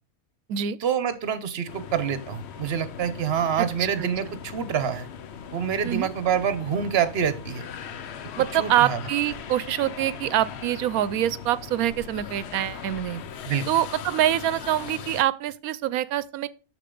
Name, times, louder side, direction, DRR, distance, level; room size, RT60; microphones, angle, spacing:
voice 1, 0.8-5.1 5.5-7.7 8.6-9.0 13.5-13.7, right 8 dB, 50° right, 1.0 m, -26 dB
sound 1, 1.7-15.2, left 7 dB, 60° left, 0.8 m, -39 dB
voice 2, 3.6-4.1 5.8-6.1 8.4-13.2 13.7-16.5, right 12 dB, 80° right, 1.0 m, -25 dB
6.8 x 6.7 x 3.8 m
omnidirectional pair, 1.5 m